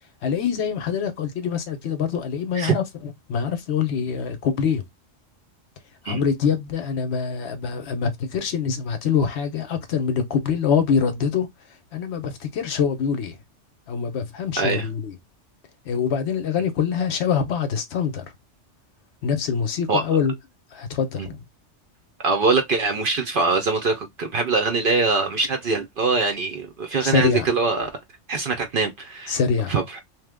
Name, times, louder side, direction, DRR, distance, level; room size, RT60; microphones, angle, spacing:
voice 1, 0.2-4.8 6.0-11.5 11.9-13.4 13.9-15.1 15.9-18.3 19.2-20.3 20.7-21.4 27.0-27.5 29.3-29.7, left 6 dB, 70° left, 0.8 m, -24 dB
voice 2, 14.6-14.9 19.9-20.0 21.2-21.3 22.2-27.9 28.3-29.4 29.7-30.0, right 4 dB, 60° right, 0.6 m, -23 dB
3.0 x 2.0 x 3.3 m
omnidirectional pair, 1.2 m